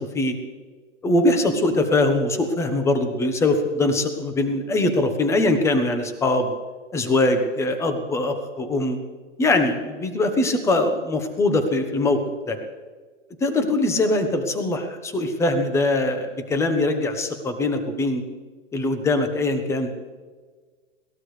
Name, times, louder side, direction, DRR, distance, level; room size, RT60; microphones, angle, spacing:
voice 1, 1.0-6.5 6.9-9.0 9.4-12.2 12.5-12.6 13.4-18.2 18.7-19.9, left 2 dB, 10° left, 7 dB, 1.1 m, -22 dB
21.0 x 18.0 x 3.4 m, 1.4 s
hypercardioid pair, 155°, 36 cm